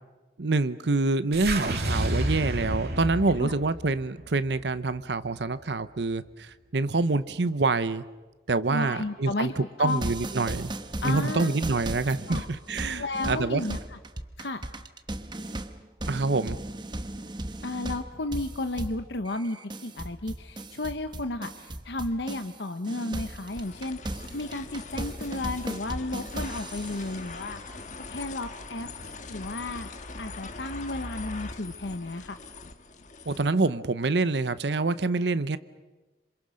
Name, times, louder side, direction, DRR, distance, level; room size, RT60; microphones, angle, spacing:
voice 1, 0.4-8.0 8.5-10.7 11.0-13.6 16.1-16.6 33.3-35.6, right 3 dB, 80° right, 14 dB, 0.8 m, -26 dB
sound 1, 1.3-5.6, right 1 dB, 60° right, 2.3 m, -31 dB
voice 2, 8.7-10.0 11.0-11.5 12.3-12.5 12.9-14.0 14.4-14.6 17.6-19.6 19.8-24.0 24.3-27.6 28.1-28.9 29.3-29.9 30.2-32.4, left 2 dB, 80° left, 8 dB, 1.0 m, -33 dB
sound 2, 9.9-22.6 22.8-27.2, right 1 dB, 25° right, 1.0 m, -36 dB
sound 3, 23.5-33.5, left 3 dB, 45° left, 1.5 m, -42 dB
27.0 x 27.0 x 6.4 m, 1.2 s
head